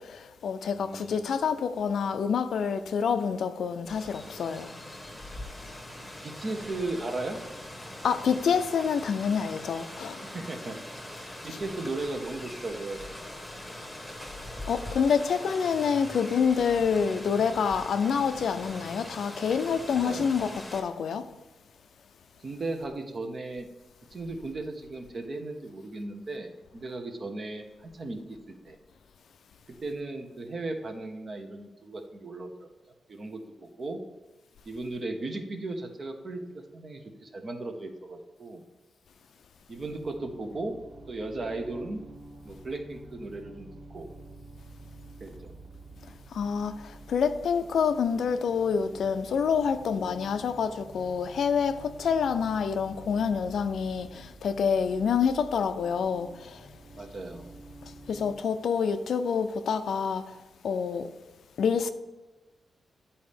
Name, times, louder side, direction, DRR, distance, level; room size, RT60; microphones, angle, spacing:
voice 1, 0.0-4.7 8.0-10.2 14.7-21.3 46.3-56.7 58.1-60.2 60.6-61.1 61.6-61.9, left 6 dB, 75° left, 0.5 m, -27 dB
voice 2, 0.7-1.3 6.2-7.4 10.2-10.8 11.4-13.0 13.3-13.5 19.8-20.3 22.4-23.7 24.1-28.4 28.6-28.8 29.8-32.7 33.1-34.0 34.7-38.6 39.7-40.8 41.1-42.0 42.4-44.1 45.2-45.5 56.9-57.5, right 2 dB, 35° right, 0.9 m, -36 dB
Rain, 3.9-20.8, left 1 dB, 10° left, 1.1 m, -42 dB
sound 1, 39.7-58.4, right 2 dB, 75° right, 2.8 m, -49 dB
10.0 x 4.2 x 5.2 m
wide cardioid pair, 170°, 0 cm